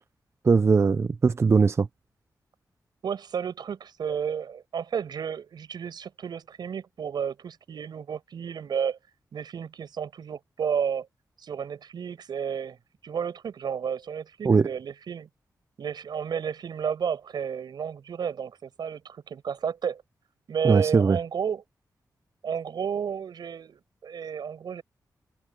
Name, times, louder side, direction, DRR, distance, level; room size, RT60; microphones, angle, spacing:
voice 1, 0.4-1.9 14.4-14.7 20.6-21.2, right 4 dB, 40° right, 0.6 m, -20 dB
voice 2, 3.0-9.0 9.3-11.1 11.4-12.8 13.0-15.3 15.8-20.0 20.5-21.6 22.4-24.8, right 7 dB, 85° right, 7.1 m, -32 dB
open air
wide cardioid pair, 110°, 7 cm